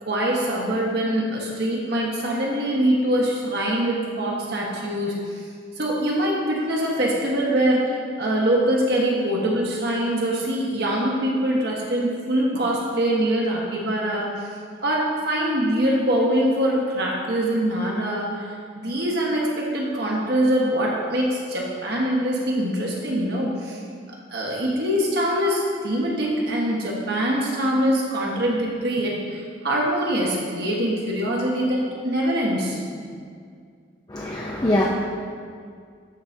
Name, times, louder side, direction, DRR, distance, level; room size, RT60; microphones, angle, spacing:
voice 1, 0.0-5.4 5.8-14.3 14.8-23.8 24.3-33.1, right 1 dB, 55° right, -3 dB, 1.3 m, -23 dB
voice 2, 34.1-34.9, left 1 dB, 20° left, -3 dB, 0.5 m, -23 dB
12.5 x 4.8 x 2.7 m, 2.1 s
head